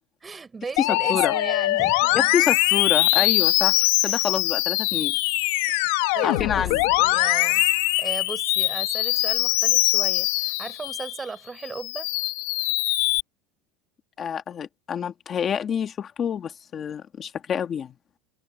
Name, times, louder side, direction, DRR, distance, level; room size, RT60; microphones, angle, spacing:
voice 1, 0.2-2.2 3.1-3.3 4.0-4.3 6.1-7.7 8.0-12.1, right 4 dB, 15° right, 7.0 m, -36 dB
Musical instrument, 0.8-11.2 11.6-13.2, left 20 dB, 70° left, 1.9 m, -22 dB
voice 2, 0.8-1.3 2.1-5.2 6.2-6.8 14.2-17.9, left 8 dB, 25° left, 2.0 m, -27 dB
supercardioid pair, 160°, 0 cm